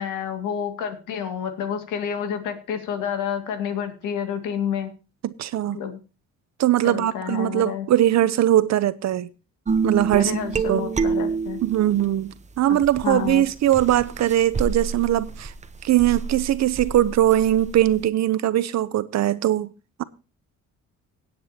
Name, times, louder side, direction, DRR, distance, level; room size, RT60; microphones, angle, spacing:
voice 1, 0.0-4.9 5.7-6.0 6.8-7.9 10.1-11.6 12.7-12.8 13.0-13.4, left 8 dB, 90° left, 2.2 m, -29 dB
voice 2, 5.2-5.8 6.6-9.3 9.8-10.4 10.7-10.9 11.6-15.5 15.8-19.7 20.0-20.1, right 12 dB, 60° right, 0.8 m, -21 dB
sound 1, 9.7-12.1 12.8-18.0, right 5 dB, 25° right, 0.8 m, -28 dB
18.0 x 8.7 x 2.8 m
cardioid pair, 100°, 30 cm